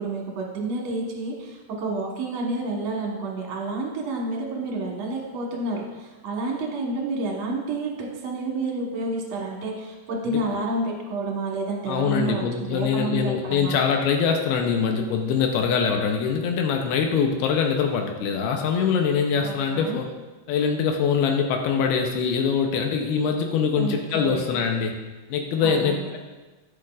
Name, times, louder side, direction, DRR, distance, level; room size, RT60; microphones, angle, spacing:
voice 1, 0.0-13.8 19.4-20.0 23.7-24.6 25.6-26.1, right 2 dB, 60° right, -1 dB, 1.9 m, -29 dB
voice 2, 11.9-20.1 20.5-25.0 25.3-26.2, left 6 dB, 85° left, 3 dB, 2.6 m, -23 dB
14.0 x 6.0 x 2.4 m, 1.2 s
omnidirectional pair, 4.5 m